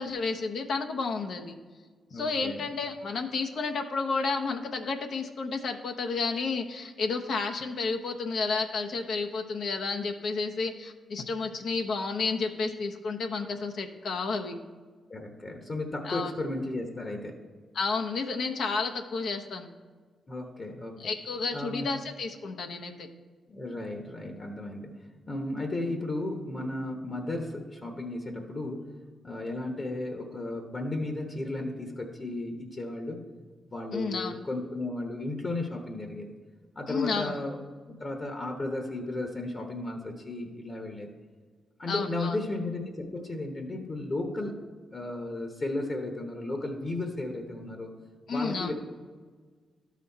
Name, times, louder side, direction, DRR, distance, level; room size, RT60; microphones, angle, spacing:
voice 1, 0.0-1.6 2.1-14.6 16.0-16.3 17.7-19.7 21.0-23.1 33.9-34.4 36.9-37.3 41.9-42.4 48.3-48.7, left 4 dB, 70° left, 5 dB, 0.8 m, -31 dB
voice 2, 2.1-2.7 15.1-17.4 20.3-21.1 21.5-21.9 23.5-28.9 29.2-33.3 33.7-36.3 36.7-41.1 41.8-44.7 44.9-47.9 48.3-48.7, left 2 dB, 40° left, 3 dB, 1.1 m, -34 dB
12.5 x 4.2 x 4.2 m, 1.5 s
cardioid pair, 60°, 0 cm